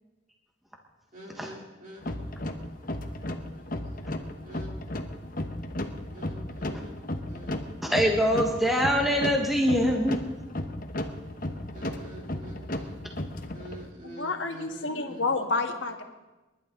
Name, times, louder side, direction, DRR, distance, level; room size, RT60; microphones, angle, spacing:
voice 1, 1.1-4.1 4.4-4.7 5.0-5.3 5.6-5.8 6.1-7.0 7.3-7.6 11.7-15.5, right 1 dB, 45° right, -2 dB, 3.6 m, -47 dB
sound 1, 2.0-13.8, left 1 dB, 45° left, 1.1 m, -35 dB
voice 2, 7.8-10.3, equal, ahead, 1 dB, 1.4 m, -24 dB
voice 3, 14.0-16.0, left 3 dB, 80° left, 4 dB, 1.7 m, -29 dB
29.5 x 11.5 x 3.9 m, 1.1 s
head